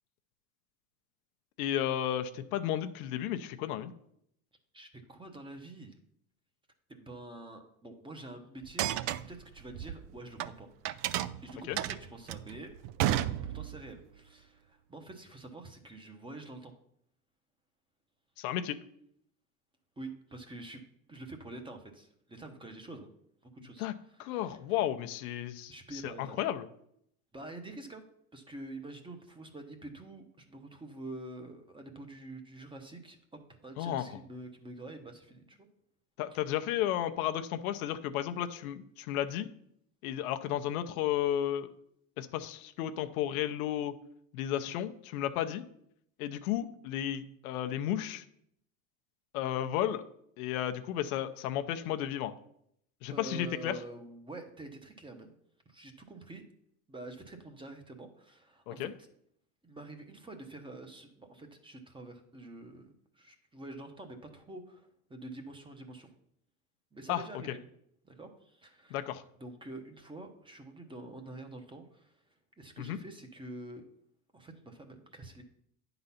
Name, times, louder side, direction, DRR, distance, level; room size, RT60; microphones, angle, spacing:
voice 1, 1.6-3.9 11.7-11.8 18.4-18.8 23.8-23.9 24.2-26.7 33.8-34.1 36.2-39.5 40.0-41.7 42.2-43.9 44.3-45.6 46.2-48.2 49.3-50.0 50.4-52.3 53.0-53.8 58.7-58.9 67.1-67.2 68.9-69.2 72.8-73.0, left 11 dB, 85° left, 9 dB, 0.8 m, -33 dB
voice 2, 4.7-5.9 6.9-8.9 9.3-10.7 11.4-12.7 13.5-16.7 20.0-20.8 21.1-23.1 23.4-24.6 25.7-26.4 27.3-28.0 28.3-35.7 36.3-36.4 53.1-55.3 55.7-56.4 56.9-58.9 59.6-66.1 66.9-67.6 68.0-69.0 69.4-72.2 72.6-73.8 74.3-75.4, right 2 dB, 10° right, 5 dB, 0.9 m, -47 dB
sound 1, 8.6-10.5 10.8-13.9, right 12 dB, 50° right, 0.4 m, -32 dB
9.5 x 4.0 x 5.6 m, 0.72 s
supercardioid pair, 120°, 42 cm